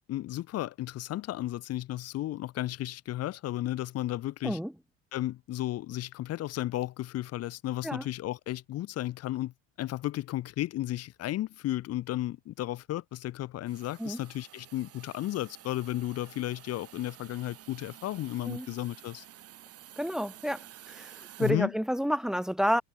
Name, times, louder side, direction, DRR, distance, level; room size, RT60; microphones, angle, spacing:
voice 1, 0.1-4.6 5.1-9.5 9.8-19.2 21.4-21.7, left 14 dB, 50° left, 1.6 m, -34 dB
Hiss, 13.7-21.5, right 12 dB, 50° right, 7.8 m, -51 dB
voice 2, 20.0-22.8, equal, ahead, 1.8 m, -30 dB
supercardioid pair, 110°, 30 cm